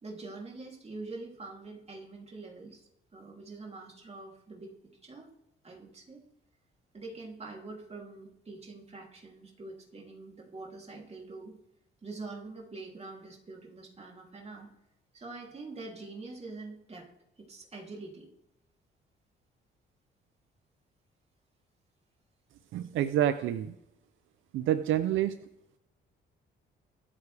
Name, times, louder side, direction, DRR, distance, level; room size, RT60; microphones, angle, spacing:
voice 1, 0.0-4.7 5.0-5.3 5.6-6.2 6.9-11.6 12.0-14.7 15.1-17.1 17.4-18.3, right 3 dB, 30° right, 0 dB, 3.1 m, -45 dB
voice 2, 22.7-23.7 24.5-25.4, right 11 dB, 80° right, 12 dB, 0.6 m, -28 dB
24.0 x 8.5 x 3.4 m, 0.85 s
cardioid pair, 90°, 20 cm